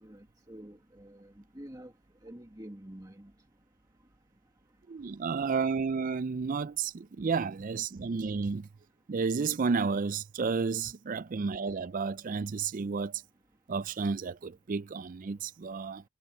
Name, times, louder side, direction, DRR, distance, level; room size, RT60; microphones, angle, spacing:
voice 1, 0.0-1.9 2.2-3.3, right 1 dB, 15° right, 1.8 m, -48 dB
voice 2, 4.9-8.7 9.1-13.1 13.7-16.0, right 5 dB, 35° right, 0.4 m, -31 dB
head